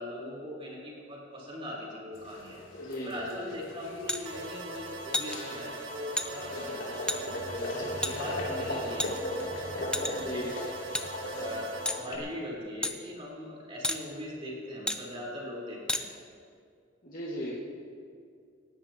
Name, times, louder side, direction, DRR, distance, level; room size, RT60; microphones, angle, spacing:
voice 1, 0.0-2.6 3.0-6.7 7.4-9.1 9.6-10.5 11.3-11.7 12.0-16.1, left 1 dB, 30° right, -4 dB, 4.0 m, -40 dB
sound 1, 2.1-12.2, left 1 dB, 80° left, 3.0 m, -38 dB
voice 2, 2.8-3.5 10.1-10.5 17.0-17.6, left 1 dB, 45° left, -7 dB, 1.9 m, -37 dB
sound 2, 4.1-4.2 5.1-5.4 6.2-6.3 7.1-7.2 8.0-8.1 9.0-9.4 9.9-10.3 10.9-11.1 11.9-12.0 12.8-12.9 13.8-14.0 14.9-15.0 15.9-16.0, left 2 dB, 5° left, 0.6 m, -30 dB
sound 3, 4.3-12.0, right 2 dB, 70° right, 1.6 m, -41 dB
19.5 x 16.0 x 3.0 m, 2.2 s
head